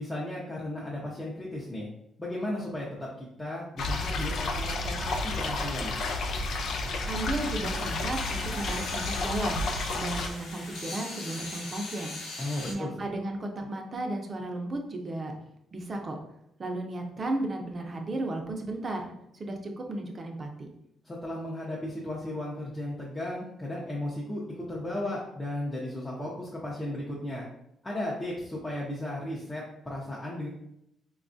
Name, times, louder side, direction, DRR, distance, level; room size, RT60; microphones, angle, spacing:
voice 1, 0.0-1.9 2.2-6.0 12.4-12.9 21.0-27.5 27.8-30.5, left 1 dB, 15° left, -6 dB, 0.7 m, -35 dB
sound 1, 3.8-10.3, left 2 dB, 65° left, 0.4 m, -31 dB
voice 2, 7.1-9.6 9.9-12.2 12.6-15.3 15.7-16.2 16.6-20.7, right 2 dB, 40° right, 2 dB, 0.6 m, -34 dB
sound 2, 7.6-12.7, left 2 dB, 80° left, 0.8 m, -41 dB
4.0 x 2.3 x 2.6 m, 0.80 s
cardioid pair, 90°, 0 cm